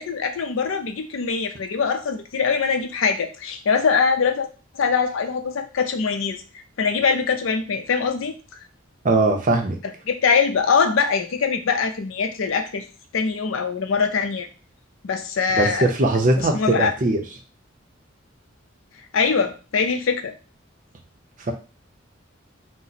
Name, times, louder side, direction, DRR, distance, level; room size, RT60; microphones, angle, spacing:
voice 1, 0.0-4.5 4.7-6.4 6.8-8.3 10.1-12.8 13.1-14.5 15.0-15.9 16.4-16.9 19.1-20.3, left 5 dB, 75° left, 7 dB, 0.5 m, -22 dB
voice 2, 9.0-9.8 15.5-17.2 21.5-21.6, right 2 dB, 40° right, 3 dB, 0.6 m, -20 dB
2.8 x 2.0 x 4.0 m, 0.33 s
head